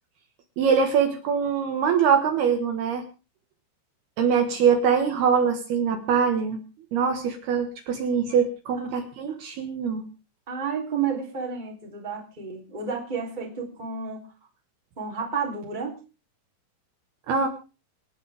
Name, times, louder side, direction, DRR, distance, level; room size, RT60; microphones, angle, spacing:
voice 1, 0.6-3.0 4.2-6.6 6.9-10.0 17.3-17.5, right 6 dB, 65° right, 5 dB, 3.3 m, -23 dB
voice 2, 10.5-14.2 15.0-16.0, right 6 dB, 10° right, 1 dB, 2.9 m, -31 dB
26.5 x 9.9 x 3.5 m, 0.33 s
omnidirectional pair, 5.3 m